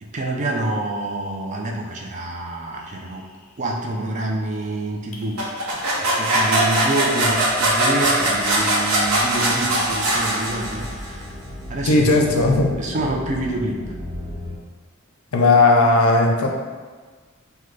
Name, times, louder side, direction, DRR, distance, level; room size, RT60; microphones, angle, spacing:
voice 1, 0.0-3.3 3.6-5.4 5.9-11.3 11.7-12.5 12.8-13.9, right 1 dB, 35° right, 0 dB, 0.4 m, -27 dB
sound 1, 2.7-3.4 5.1-14.6, left 1 dB, 35° left, 0.5 m, -38 dB
sound 2, 5.4-11.0, right 1 dB, 85° right, 0.7 m, -21 dB
voice 2, 11.9-12.7 15.3-16.5, left 2 dB, 90° left, 1 dB, 0.5 m, -16 dB
3.6 x 2.2 x 3.2 m, 1.5 s
head